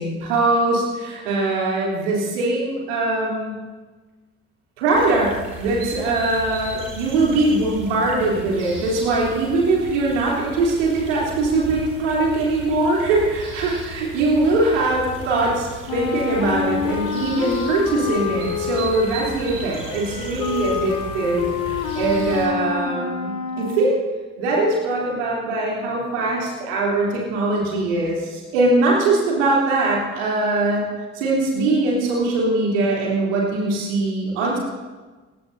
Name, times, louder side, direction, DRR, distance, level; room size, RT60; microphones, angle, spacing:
voice 1, 0.0-3.6 4.8-24.0 24.4-30.9 31.1-34.6, right 2 dB, 75° right, -4 dB, 3.6 m, -21 dB
sound 1, 4.9-22.5, right 2 dB, 55° right, 4.9 m, -36 dB
Wind instrument woodwind instrument, 15.9-24.0, left 7 dB, 55° left, 1.4 m, -28 dB
22.0 x 17.0 x 2.8 m, 1.3 s
figure-of-eight pair, 45°, 37 cm